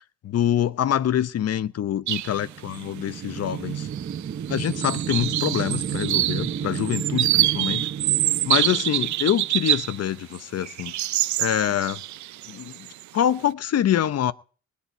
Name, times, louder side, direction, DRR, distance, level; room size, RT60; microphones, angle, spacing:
voice 1, 0.2-3.9 4.5-7.9 8.4-10.9 11.4-12.0 12.5-12.7 13.1-14.3, left 10 dB, 55° left, 0.9 m, -25 dB
sound 1, 2.1-2.4 2.7-2.8 3.8-4.2 4.5-10.0 10.3-13.0, right 15 dB, 70° right, 0.6 m, -26 dB
sound 2, 2.2-9.8, right 8 dB, 40° right, 0.9 m, -32 dB
20.5 x 8.6 x 4.3 m
cardioid pair, 90°, 30 cm